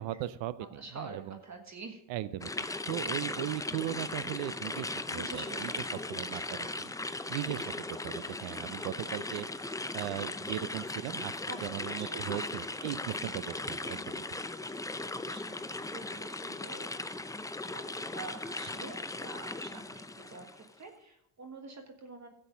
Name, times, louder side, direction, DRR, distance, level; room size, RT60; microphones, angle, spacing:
voice 1, 0.0-1.4 2.1-2.5 2.9-5.7 6.1-11.3 11.6-14.2, right 14 dB, 80° right, 16 dB, 0.7 m, -38 dB
voice 2, 0.7-2.0 3.2-3.4 5.1-6.5 11.5-11.6 11.8-12.5 14.9-17.0 17.7-22.3, right 3 dB, 40° right, 5 dB, 1.6 m, -47 dB
sound 1, 2.4-20.7, left 2 dB, 10° left, 0.5 m, -38 dB
11.5 x 7.8 x 5.1 m, 0.82 s
supercardioid pair, 65°, 44 cm